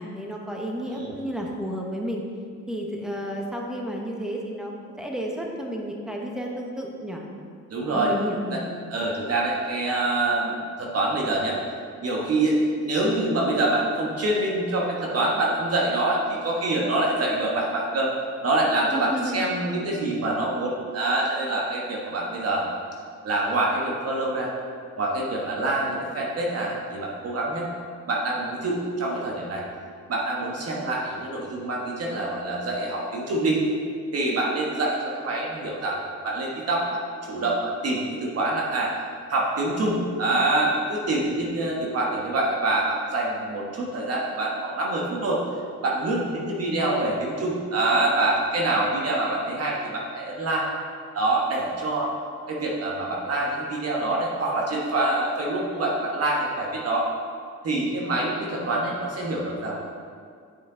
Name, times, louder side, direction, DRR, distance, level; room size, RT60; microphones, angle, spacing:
voice 1, 0.0-2.2 2.7-4.7 5.0-7.2 7.9-8.7 18.9-19.5, equal, ahead, 0 dB, 1.2 m, -32 dB
voice 2, 7.7-8.1 8.5-8.6 8.9-11.6 12.0-18.1 18.4-22.6 23.2-24.5 25.0-27.7 28.1-29.6 30.1-33.6 34.1-38.9 39.3-45.4 45.8-50.7 51.1-52.1 52.5-57.1 57.6-59.8, right 2 dB, 55° right, -3 dB, 1.4 m, -25 dB
8.6 x 5.8 x 3.9 m, 2.2 s
cardioid pair, 90°, 30 cm